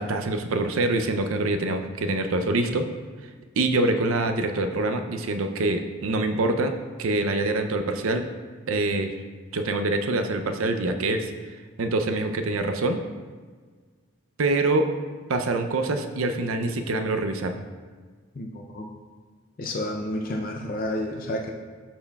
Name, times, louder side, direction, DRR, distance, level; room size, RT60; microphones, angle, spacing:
voice 1, 0.0-2.9 3.6-8.3 8.7-9.1 9.5-11.3 11.8-13.0 14.4-15.0 15.3-17.6, right 2 dB, 80° right, 6 dB, 0.5 m, -25 dB
voice 2, 18.4-18.9 19.6-21.5, left 1 dB, 40° left, 1 dB, 0.5 m, -30 dB
12.0 x 4.4 x 2.3 m, 1.5 s
head